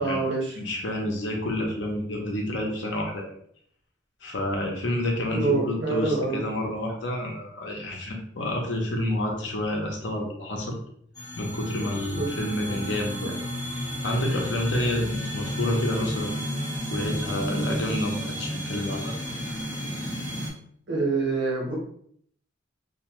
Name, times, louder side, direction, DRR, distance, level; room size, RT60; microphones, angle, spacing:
voice 1, 0.0-0.5 5.3-6.4 12.2-12.3 20.9-21.8, right 3 dB, 75° right, -4 dB, 1.1 m, -26 dB
voice 2, 0.6-3.3 4.2-10.7 11.4-13.4 14.0-16.4 16.9-19.1, left 1 dB, 70° left, 0 dB, 0.7 m, -29 dB
sound 1, 11.2-20.5, equal, 20° left, 0.9 m, -32 dB
2.5 x 2.3 x 2.9 m, 0.64 s
head